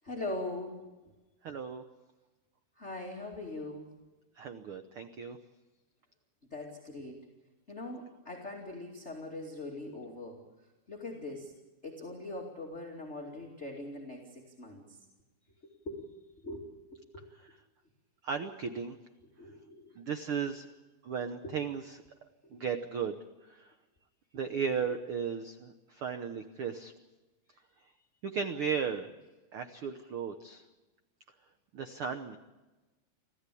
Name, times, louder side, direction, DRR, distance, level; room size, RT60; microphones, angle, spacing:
voice 1, 0.0-0.9 2.8-3.9 6.5-7.3 7.7-10.4 10.9-11.5 11.8-15.0 15.6-16.1 16.4-16.6 16.9-17.2 19.4-20.0 20.4-20.5 21.4-21.6 22.5-22.6, left 2 dB, 20° left, -1 dB, 2.4 m, -41 dB
voice 2, 1.4-1.8 4.4-5.4 18.2-19.0 20.0-20.7 21.0-21.8 22.5-23.2 23.5-23.7 24.3-26.9 28.2-29.1 29.5-30.6 31.7-32.4, right 6 dB, 75° right, 8 dB, 1.2 m, -35 dB
25.5 x 15.5 x 8.5 m, 1.1 s
omnidirectional pair, 3.9 m